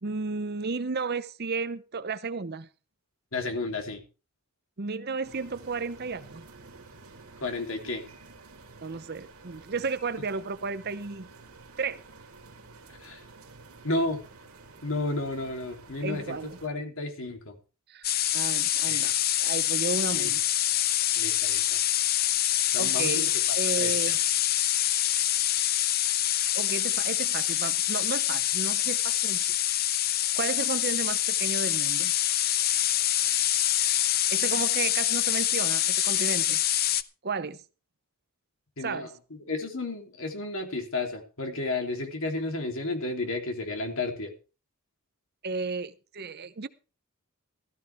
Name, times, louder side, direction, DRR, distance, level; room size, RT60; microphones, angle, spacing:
voice 1, 0.0-2.7 4.8-6.5 8.8-11.3 11.8-12.0 16.0-16.6 17.9-20.4 22.8-24.5 25.1-25.2 26.5-29.6 29.8-32.1 34.3-36.6 37.2-37.6 38.8-39.1 45.4-46.7, right 4 dB, 45° right, 0.7 m, -33 dB
voice 2, 3.3-4.0 7.4-8.0 13.0-13.2 13.8-14.2 14.8-17.6 18.8-19.1 20.1-20.3 21.2-21.8 22.7-23.2 23.8-23.9 38.8-39.1 39.5-44.3, left 2 dB, 60° left, 3.2 m, -32 dB
sound 1, 5.2-16.7, right 3 dB, 80° right, 2.8 m, -50 dB
sound 2, 18.0-37.0, left 12 dB, 45° left, 0.6 m, -26 dB
15.5 x 14.0 x 3.5 m
head